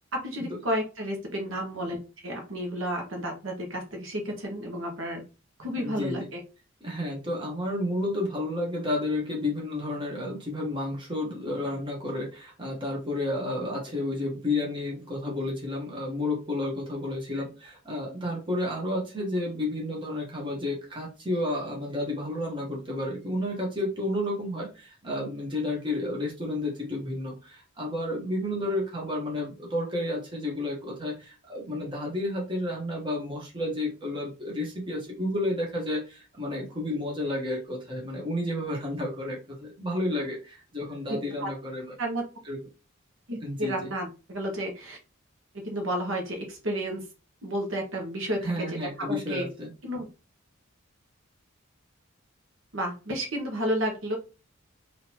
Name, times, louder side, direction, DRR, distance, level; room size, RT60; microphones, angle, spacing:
voice 1, 0.1-2.0 2.2-5.2 5.6-6.4 41.1-41.5 42.0-42.2 43.3-45.0 45.6-47.0 47.4-49.5 49.8-50.1 52.7-54.2, equal, 70° right, 2 dB, 1.1 m, -31 dB
voice 2, 5.8-6.3 6.8-41.9 42.4-42.6 43.4-43.9 48.4-49.7, left 1 dB, 25° right, -2 dB, 1.2 m, -31 dB
3.8 x 2.8 x 2.9 m, 0.31 s
head